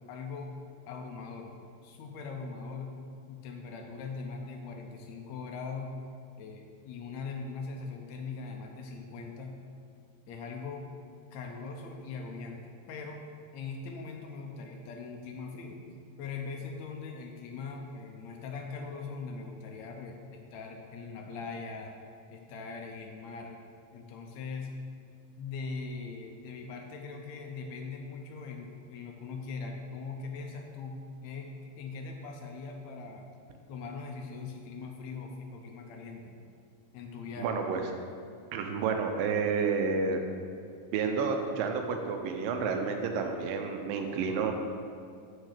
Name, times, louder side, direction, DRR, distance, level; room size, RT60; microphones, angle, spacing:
voice 1, 0.1-0.5 0.9-1.6 1.8-2.9 3.3-5.9 6.4-9.6 10.3-10.9 11.3-13.2 13.5-15.8 16.2-21.9 22.3-23.6 23.9-24.7 25.4-33.3 33.7-36.4 36.9-37.5, left 4 dB, 80° left, 2 dB, 1.6 m, -41 dB
voice 2, 37.4-37.8 38.5-40.2 40.9-44.5, right 5 dB, 90° right, 4 dB, 2.4 m, -30 dB
6.3 x 5.7 x 6.5 m, 2.4 s
omnidirectional pair, 3.9 m